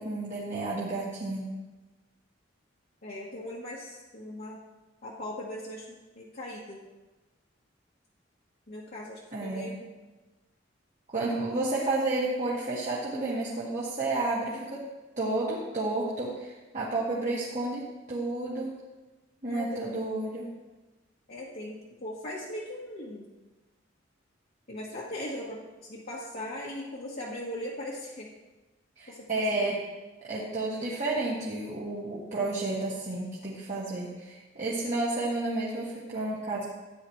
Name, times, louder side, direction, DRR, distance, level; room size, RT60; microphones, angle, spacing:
voice 1, 0.0-1.5 9.3-9.8 11.1-14.8 15.2-17.8 18.1-18.7 19.4-20.5 29.0-29.8 30.3-36.6, right 2 dB, 40° right, -7 dB, 1.9 m, -31 dB
voice 2, 3.0-4.6 5.0-6.8 8.7-9.9 19.4-20.0 21.3-23.3 24.7-25.6 25.9-28.3 29.1-29.7, left 1 dB, 50° left, -6 dB, 1.4 m, -39 dB
13.5 x 9.4 x 3.2 m, 1.2 s
head